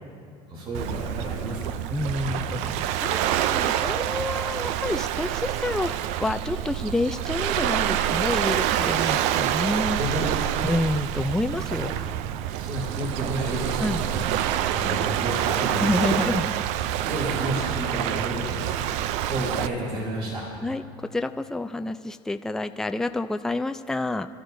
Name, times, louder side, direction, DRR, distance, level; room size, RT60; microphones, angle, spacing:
voice 1, 0.5-1.8 2.2-2.5 10.0-10.5 11.7-11.9 12.6-14.2 14.6-16.2 17.0-18.7 19.3-20.5, right 1 dB, 50° right, -3 dB, 3.2 m, -31 dB
Waves surf, 0.7-19.7, right 11 dB, 70° right, 0.5 m, -27 dB
voice 2, 1.9-3.2 3.5-5.9 6.2-10.0 10.6-11.9 13.8-14.1 15.8-16.6 20.6-24.3, left 2 dB, 5° left, 8 dB, 0.4 m, -28 dB
27.0 x 13.0 x 2.7 m, 2.4 s
cardioid pair, 120°, 12 cm